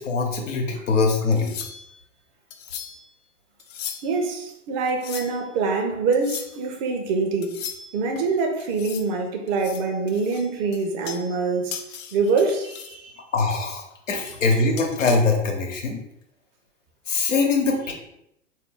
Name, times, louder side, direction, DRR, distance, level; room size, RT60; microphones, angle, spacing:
voice 1, 0.0-1.5 13.3-16.0 17.1-17.9, left 3 dB, 75° left, 1.0 m, -22 dB
sound 1, 1.3-2.0 2.5-3.1 3.6-4.2 4.9-5.5 6.1-6.6 7.4-8.2 8.6-9.1 9.5-11.5 11.7-13.0 13.4-15.2, left 8 dB, 35° left, 0.5 m, -38 dB
voice 2, 4.0-7.7 7.9-11.8 12.1-13.1 14.2-14.3, right 4 dB, 40° right, 0.8 m, -25 dB
4.0 x 2.7 x 3.7 m
figure-of-eight pair, 95°, 38 cm